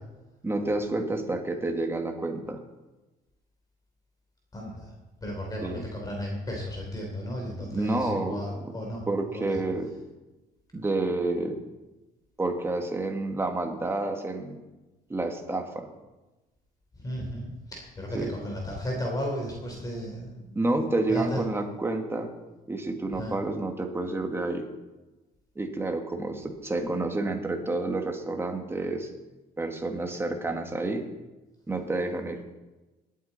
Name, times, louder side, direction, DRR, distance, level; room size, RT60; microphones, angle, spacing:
voice 1, 0.4-2.6 5.6-5.8 7.7-8.7 9.1-10.0 10.7-11.6 12.4-14.6 15.1-15.9 18.1-18.4 20.6-22.3 22.7-24.7 25.6-29.1 29.6-31.0 31.7-32.4, right 2 dB, 15° right, 3 dB, 1.8 m, -29 dB
voice 2, 4.5-4.9 5.2-9.0 9.3-9.6 17.0-20.6 21.1-21.4 23.1-23.3, equal, 20° left, 0 dB, 3.3 m, -34 dB
19.5 x 8.4 x 4.1 m, 1.1 s
cardioid pair, 110°, 17 cm